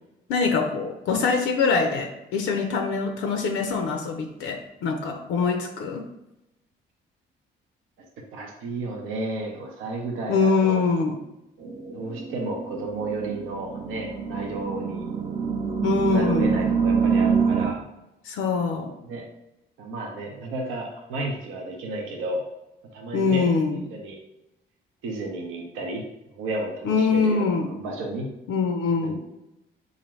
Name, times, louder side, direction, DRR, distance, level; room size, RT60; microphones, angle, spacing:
voice 1, 0.3-6.1 10.3-11.2 15.8-16.7 18.2-18.9 23.1-23.8 26.8-27.7 28.5-29.2, left 4 dB, 80° left, 5 dB, 0.5 m, -24 dB
voice 2, 8.3-10.8 11.9-15.1 16.1-17.8 19.0-19.2 19.8-22.4 22.9-23.5 23.9-24.2 25.0-28.3 29.0-29.1, right 2 dB, 90° right, 1 dB, 0.7 m, -32 dB
sound 1, 11.6-17.7, right 6 dB, 35° right, 0.5 m, -26 dB
4.1 x 2.5 x 3.1 m, 0.91 s
cardioid pair, 90°, 20 cm